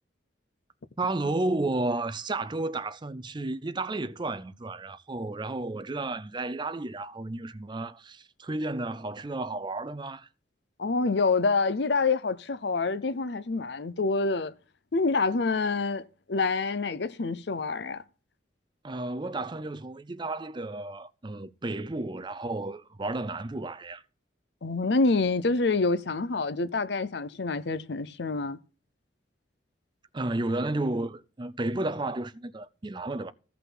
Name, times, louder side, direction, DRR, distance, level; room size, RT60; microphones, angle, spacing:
voice 1, 1.0-10.3 18.8-24.0 30.1-33.3, right 2 dB, 25° right, 0.5 m, -32 dB
voice 2, 10.8-14.5 14.9-18.0 24.6-28.6, left 3 dB, 65° left, 0.7 m, -27 dB
15.5 x 5.7 x 3.9 m
head